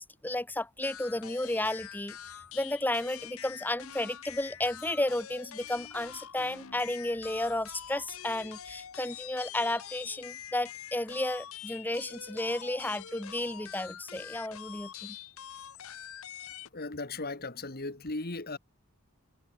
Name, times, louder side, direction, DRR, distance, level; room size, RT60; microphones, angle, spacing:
voice 1, 0.0-2.2 2.5-15.2, left 1 dB, 10° left, 1.0 m, -33 dB
sound 1, 0.8-16.7, left 10 dB, 65° left, 0.8 m, -45 dB
voice 2, 16.7-18.6, left 2 dB, 45° left, 1.8 m, -37 dB
head